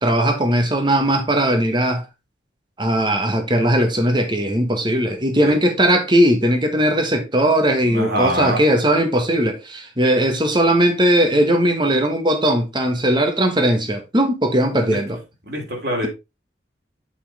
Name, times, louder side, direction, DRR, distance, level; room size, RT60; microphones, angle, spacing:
voice 1, 0.0-2.0 2.8-15.2, right 1 dB, 25° right, 1.3 m, -18 dB
voice 2, 7.9-8.6 14.8-15.0 15.5-16.1, right 1 dB, 60° right, 3.1 m, -24 dB
7.5 x 5.6 x 3.4 m
head